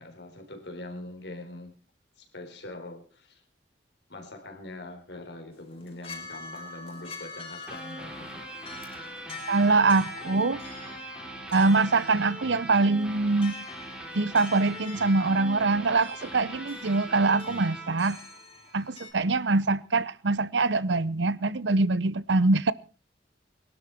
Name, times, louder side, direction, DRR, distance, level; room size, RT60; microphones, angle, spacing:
voice 1, 0.0-1.7 2.2-3.4 4.1-8.4, left 2 dB, 75° left, 3.9 m, -43 dB
sound 1, 5.5-19.1, left 4 dB, 30° left, 3.1 m, -45 dB
sound 2, 7.7-18.9, right 2 dB, 5° right, 3.4 m, -41 dB
voice 2, 9.5-10.6 11.5-13.6 14.1-18.2 18.7-22.7, right 3 dB, 80° right, 0.8 m, -24 dB
21.0 x 12.5 x 4.5 m
head